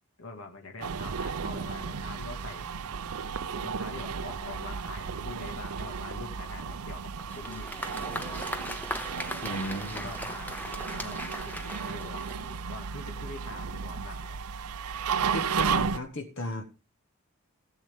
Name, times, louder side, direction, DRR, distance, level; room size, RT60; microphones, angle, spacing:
voice 1, 0.2-2.8 3.5-8.3 9.5-14.4, left 3 dB, 75° left, 1.9 m, -44 dB
sound 1, 0.8-16.0, right 6 dB, 85° right, 0.6 m, -34 dB
Applause, 7.2-12.8, left 1 dB, 10° left, 0.8 m, -39 dB
voice 2, 9.4-10.1 15.3-16.6, equal, 55° left, 1.2 m, -35 dB
17.0 x 7.6 x 3.6 m
head